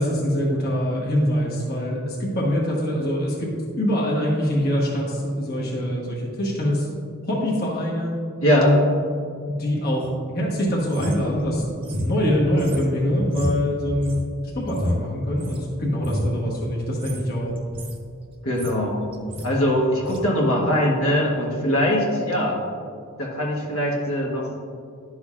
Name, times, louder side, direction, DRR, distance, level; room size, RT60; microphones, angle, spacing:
voice 1, 0.0-6.9 7.2-8.1 8.6-8.9 9.5-11.6 11.9-14.2 14.5-17.5, equal, 45° left, -4 dB, 1.1 m, -24 dB
voice 2, 8.4-8.8 18.4-19.0 19.4-22.6 23.2-24.5, equal, 70° left, -2 dB, 1.3 m, -21 dB
sound 1, 10.9-15.6 16.0-16.4 16.9-17.2 17.5-18.0 18.3-18.9 19.1-19.5 20.0-20.2, equal, 25° right, 0.8 m, -30 dB
11.0 x 6.2 x 2.4 m, 2.3 s
head